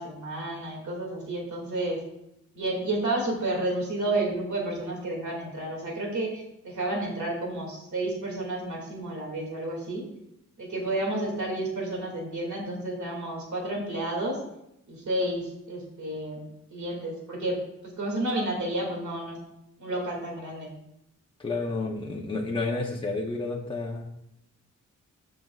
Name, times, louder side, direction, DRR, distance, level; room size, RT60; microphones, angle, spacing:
voice 1, 0.0-2.0 2.5-10.1 10.6-14.4 14.9-17.6 17.8-19.4 19.8-20.7, right 1 dB, 65° right, 0 dB, 2.4 m, -31 dB
voice 2, 21.4-24.1, left 3 dB, 15° left, 0 dB, 0.8 m, -30 dB
13.5 x 5.4 x 2.4 m, 0.83 s
wide cardioid pair, 145°, 31 cm